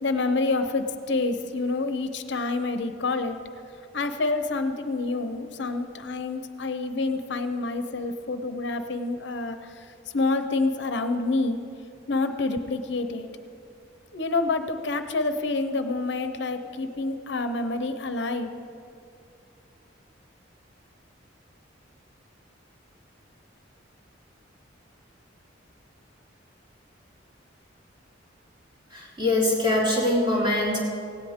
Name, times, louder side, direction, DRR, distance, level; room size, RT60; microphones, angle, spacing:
voice 1, 0.0-3.4 3.9-11.6 12.1-13.3 14.1-18.6, left 3 dB, 60° left, 8 dB, 0.7 m, -28 dB
voice 2, 28.9-30.8, left 1 dB, 25° right, -6 dB, 4.1 m, -23 dB
17.5 x 16.5 x 3.6 m, 2.7 s
head